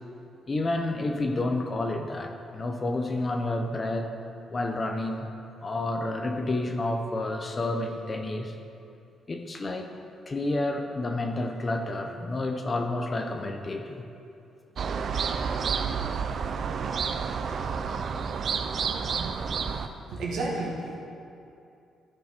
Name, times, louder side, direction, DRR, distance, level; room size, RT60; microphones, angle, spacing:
voice 1, 0.5-4.1 4.5-5.3 5.6-8.5 9.3-9.9 10.3-14.0, left 2 dB, 25° left, 5 dB, 0.7 m, -30 dB
sound 1, 14.8-19.9, right 6 dB, 50° right, 0.4 m, -30 dB
voice 2, 19.6-21.0, right 2 dB, 85° right, -3 dB, 1.8 m, -33 dB
14.0 x 5.3 x 4.4 m, 2.6 s
cardioid pair, 135°, 0 cm